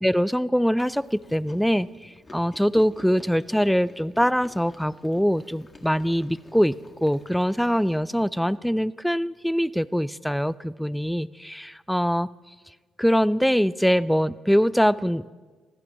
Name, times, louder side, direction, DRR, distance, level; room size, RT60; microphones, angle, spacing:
voice 1, 0.0-6.8 7.0-12.3 13.0-15.3, equal, ahead, 18 dB, 0.3 m, -23 dB
Chewing mastication, 0.8-8.0, left 2 dB, 25° left, 1.8 m, -50 dB
24.5 x 15.5 x 3.0 m, 1.4 s
cardioid pair, 90°, 0 cm